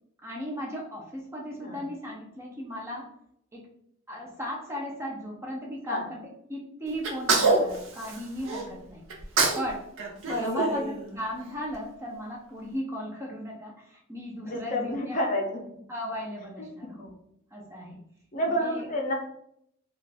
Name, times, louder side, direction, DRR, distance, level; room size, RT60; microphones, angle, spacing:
voice 1, 0.2-3.1 3.5-3.7 4.1-6.2 6.5-9.0 9.5-9.9 10.2-15.2 15.9-17.1 17.5-18.0 18.5-18.9, equal, 15° right, -2 dB, 0.5 m, -36 dB
Sneeze, 7.0-8.6 9.1-9.7 10.0-11.4, right 3 dB, 80° right, 0.6 m, -26 dB
voice 2, 10.2-10.8 14.5-15.6 16.6-16.7 18.3-19.1, equal, 40° left, 1 dB, 0.5 m, -29 dB
2.5 x 2.3 x 3.3 m, 0.73 s
head